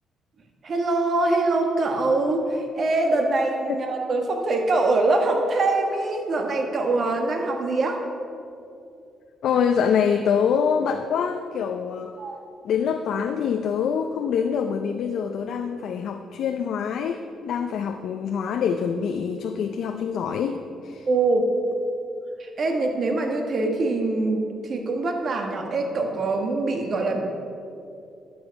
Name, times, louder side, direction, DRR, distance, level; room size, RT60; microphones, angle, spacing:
voice 1, 0.6-8.0 12.2-12.3 21.1-21.5 22.4-27.2, right 2 dB, 50° right, 3 dB, 1.4 m, -23 dB
voice 2, 9.4-12.2 12.6-21.1, left 7 dB, 70° left, 6 dB, 0.5 m, -25 dB
11.5 x 7.1 x 4.7 m, 2.6 s
cardioid pair, 90°, 0 cm